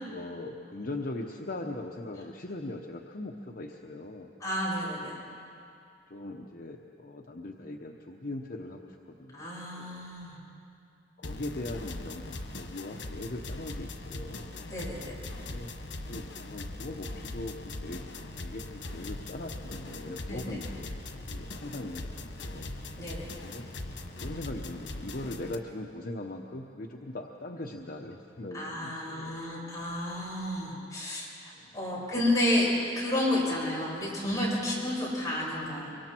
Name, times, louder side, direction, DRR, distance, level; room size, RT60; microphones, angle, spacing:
voice 1, 0.1-4.3 5.1-5.3 6.1-10.0 11.2-14.5 15.4-15.7 16.0-18.0 18.4-20.9 21.3-22.7 23.4-23.7 24.2-29.5 31.5-32.1, left 2 dB, 55° left, 1 dB, 1.0 m, -40 dB
voice 2, 4.4-5.2 9.3-10.4 14.7-15.1 20.3-20.6 23.0-23.3 28.5-31.3 31.7-36.0, left 1 dB, 20° left, -6 dB, 7.1 m, -31 dB
sound 1, 11.2-25.5, left 2 dB, 90° left, 1.3 m, -40 dB
25.0 x 24.0 x 4.5 m, 2.5 s
head